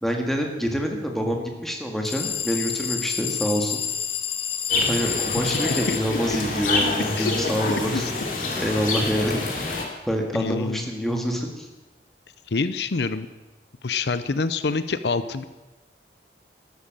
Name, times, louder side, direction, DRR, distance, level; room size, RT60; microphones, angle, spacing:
voice 1, 0.0-3.8 4.8-8.1 8.6-11.7, equal, ahead, 2 dB, 1.9 m, -26 dB
sound 1, 2.0-6.0, left 8 dB, 35° left, 0.9 m, -29 dB
sound 2, 4.7-9.8, left 3 dB, 50° left, 2.9 m, -27 dB
voice 2, 7.7-8.1 10.3-10.9 12.5-13.3 13.8-15.4, left 4 dB, 75° left, 13 dB, 0.6 m, -26 dB
12.5 x 12.5 x 7.7 m, 1.1 s
head